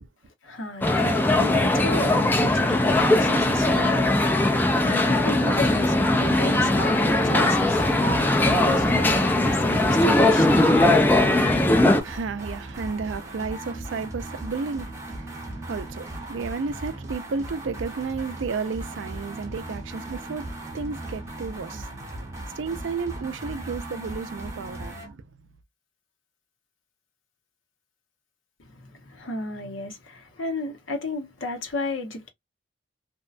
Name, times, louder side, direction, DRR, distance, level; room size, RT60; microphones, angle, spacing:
voice 1, 0.4-8.1 8.5-10.8 28.6-32.3, left 2 dB, 85° left, 0.9 m, -33 dB
sound 1, 0.8-12.0, left 1 dB, 10° left, 0.3 m, -20 dB
sound 2, 7.7-25.1, right 1 dB, 15° right, 0.7 m, -37 dB
voice 2, 11.8-25.3, right 4 dB, 75° right, 0.4 m, -33 dB
2.7 x 2.2 x 2.4 m
head